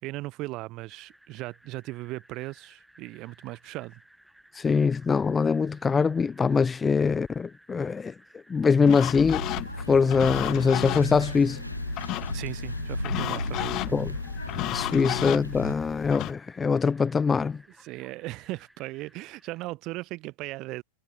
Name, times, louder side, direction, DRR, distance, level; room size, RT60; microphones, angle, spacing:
voice 1, 0.0-4.0 12.3-14.1 17.8-20.8, right 20 dB, 40° right, 4.2 m, -37 dB
sound 1, 0.9-19.6, right 1 dB, ahead, 7.4 m, -57 dB
voice 2, 4.5-8.1 8.5-9.5 9.9-11.6 13.9-14.1 14.7-17.6, left 5 dB, 15° left, 0.4 m, -23 dB
sound 2, 8.9-16.3, left 17 dB, 35° left, 1.4 m, -34 dB
sound 3, 9.3-15.7, left 1 dB, 90° left, 1.5 m, -35 dB
figure-of-eight pair, 90°, 0 cm